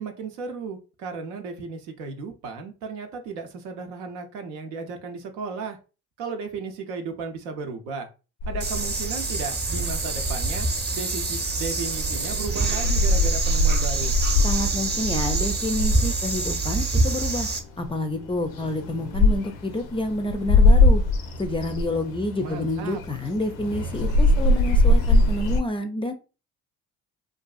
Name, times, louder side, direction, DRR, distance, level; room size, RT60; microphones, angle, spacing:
voice 1, 0.0-5.8 6.2-8.1 8.5-10.7 10.9-14.2 22.4-23.0, right 4 dB, 85° right, 5 dB, 0.6 m, -34 dB
sound 1, 8.4-9.4 9.9-11.0 11.3-17.0 17.2-17.3 17.5-25.6, left 1 dB, 85° left, 0.6 m, -22 dB
sound 2, 8.6-17.6, right 3 dB, 25° right, 0.7 m, -26 dB
voice 2, 14.4-17.5 17.8-21.0 21.4-26.1, left 1 dB, 15° left, 6 dB, 0.3 m, -28 dB
2.6 x 2.4 x 2.3 m, 0.32 s
hypercardioid pair, 60°, 40 cm